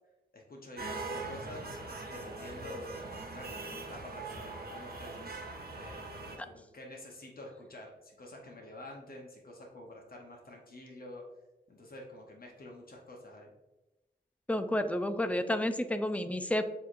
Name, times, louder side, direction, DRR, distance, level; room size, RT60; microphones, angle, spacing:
voice 1, 0.3-1.7 2.1-2.9 3.2-5.3 5.7-11.2 11.7-13.5, left 1 dB, 55° left, -1 dB, 0.9 m, -48 dB
sound 1, 0.8-6.4, right 3 dB, 60° right, 0.9 m, -41 dB
voice 2, 14.5-16.7, left 1 dB, 5° left, 9 dB, 0.3 m, -30 dB
6.8 x 3.0 x 2.5 m, 1.0 s
wide cardioid pair, 90°, 18 cm